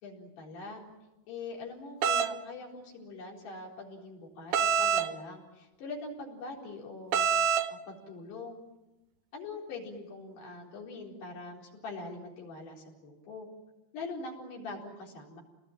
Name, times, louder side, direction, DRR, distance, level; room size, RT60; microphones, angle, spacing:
voice 1, 0.0-0.8 1.3-7.3 7.7-8.6 9.3-13.5 13.9-15.4, left 3 dB, 70° left, -1 dB, 6.4 m, -43 dB
sound 1, 2.0-2.3 4.5-5.1 7.1-7.7, right 7 dB, 80° right, 1.8 m, -25 dB
29.0 x 20.0 x 9.0 m, 1.1 s
omnidirectional pair, 5.0 m